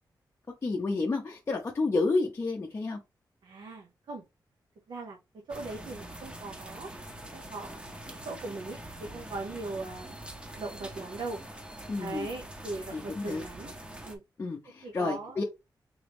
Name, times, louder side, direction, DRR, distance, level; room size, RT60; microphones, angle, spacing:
voice 1, 0.6-3.0 11.9-12.3 12.9-13.4 14.4-15.4, left 3 dB, 35° left, 0.6 m, -30 dB
voice 2, 3.4-4.2 4.9-5.2 5.5-6.9 7.3-10.2 10.6-11.4 12.0-13.8 14.0-14.2 14.8-15.4, right 3 dB, 80° right, 0.8 m, -39 dB
sound 1, 5.5-14.2, right 1 dB, 15° right, 0.7 m, -44 dB
3.9 x 2.9 x 3.4 m
wide cardioid pair, 165°, 8 cm